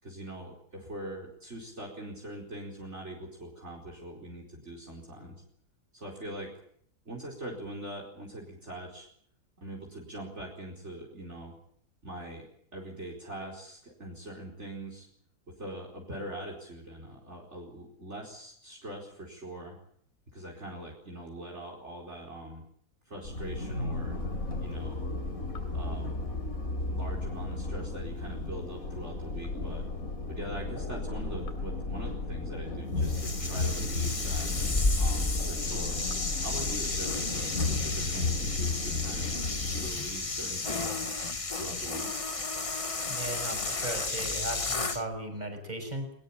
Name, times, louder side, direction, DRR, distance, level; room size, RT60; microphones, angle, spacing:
voice 1, 0.0-5.4 5.9-6.6 7.1-9.1 9.6-11.6 12.0-12.5 12.7-15.1 15.5-19.8 20.3-22.6 23.1-24.2 24.6-25.0 25.7-26.2 26.9-29.8 30.3-34.5 34.9-36.1 36.4-39.3 39.7-41.1 41.5-42.1, right 1 dB, 45° right, 1 dB, 4.9 m, -42 dB
sound 1, 23.2-39.9, left 2 dB, 60° left, 3.7 m, -34 dB
sound 2, 33.0-45.0, left 3 dB, 25° left, 1.2 m, -32 dB
voice 2, 43.1-46.1, right 1 dB, 25° right, 6 dB, 6.0 m, -37 dB
21.5 x 21.0 x 8.7 m, 0.66 s
omnidirectional pair, 1.6 m